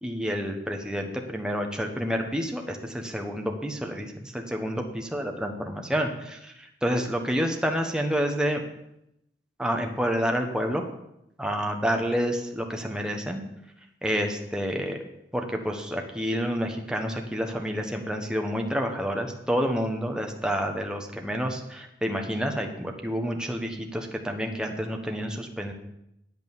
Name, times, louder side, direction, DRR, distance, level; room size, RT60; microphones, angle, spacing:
voice 1, 0.0-4.8 5.1-8.6 9.6-10.8 11.4-13.4 14.0-15.0 15.3-25.7, equal, 5° right, 3 dB, 1.1 m, -29 dB
8.9 x 8.3 x 7.3 m, 0.82 s
head